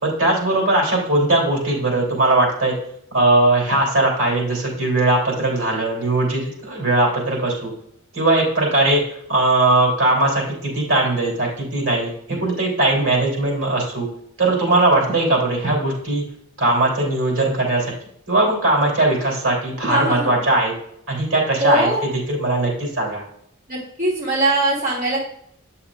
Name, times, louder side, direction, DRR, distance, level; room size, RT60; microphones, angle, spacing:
voice 1, 0.0-2.7 3.1-7.7 8.1-9.0 9.3-14.1 14.4-16.2 16.6-17.9 18.3-20.7 21.1-21.9 22.3-23.2, right 2 dB, 80° right, -1 dB, 3.3 m, -19 dB
voice 2, 19.9-20.4 21.6-22.0 23.7-25.2, right 1 dB, 45° right, -5 dB, 2.6 m, -21 dB
8.9 x 7.0 x 2.5 m, 0.71 s
head